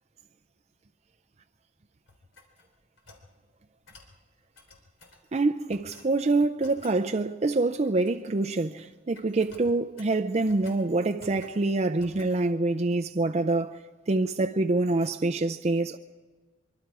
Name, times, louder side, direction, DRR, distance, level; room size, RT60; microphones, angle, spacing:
sound 1, 2.1-3.3 3.9-4.1 4.5-5.2 5.7-6.1 6.6-7.0 7.8-8.4 8.7-8.9 9.1-10.8 11.2-11.6 12.0-12.4, left 3 dB, 85° left, 3.5 m, -53 dB
voice 1, 5.3-13.8 14.1-16.0, right 2 dB, 35° right, 0.5 m, -26 dB
24.0 x 24.0 x 4.8 m
head